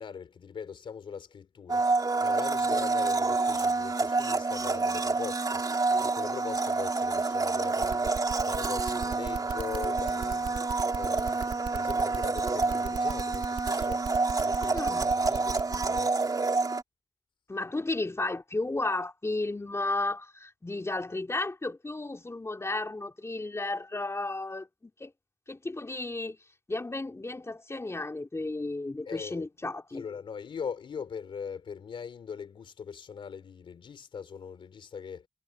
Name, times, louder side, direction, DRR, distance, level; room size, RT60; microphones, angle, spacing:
voice 1, 0.0-1.9 2.2-5.6 6.0-8.2 8.4-14.1 14.3-16.1 29.0-29.5 29.9-35.3, left 6 dB, 80° left, 3.3 m, -41 dB
Domestic sounds home sounds, 1.7-16.8, right 3 dB, 45° right, 3.1 m, -28 dB
sound 1, 7.8-16.0, right 7 dB, 85° right, 2.5 m, -37 dB
voice 2, 14.7-15.1 17.5-25.1 25.5-26.4 26.7-30.1, left 2 dB, 30° left, 3.5 m, -33 dB
cardioid pair, 40°, 9 cm